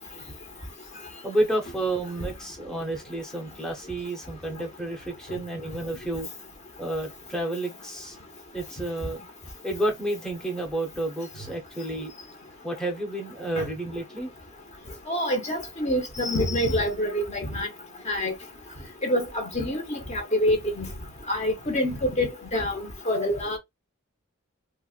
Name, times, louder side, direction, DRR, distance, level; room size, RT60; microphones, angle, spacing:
voice 1, 1.2-6.3 6.8-8.2 8.5-9.3 9.6-12.1 12.6-14.3, right 1 dB, 5° left, 0.9 m, -30 dB
voice 2, 15.1-17.7 18.1-18.3 19.0-20.9 21.3-22.8 23.1-23.6, left 1 dB, 30° left, 1.0 m, -26 dB
4.4 x 2.2 x 2.5 m
head